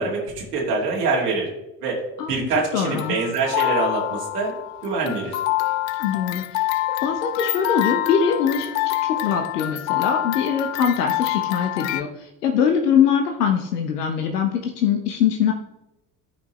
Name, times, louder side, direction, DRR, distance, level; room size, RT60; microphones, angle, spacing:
voice 1, 0.0-1.5 1.8-2.0 2.3-4.5 4.8-5.4, right 4 dB, 75° right, -3 dB, 2.3 m, -24 dB
voice 2, 2.7-3.2 6.0-6.6 7.0-15.5, left 7 dB, 75° left, 4 dB, 0.9 m, -22 dB
sound 1, 2.8-12.0, left 15 dB, 40° left, 0.4 m, -26 dB
14.0 x 5.4 x 3.1 m, 0.94 s
figure-of-eight pair, 60°, 47 cm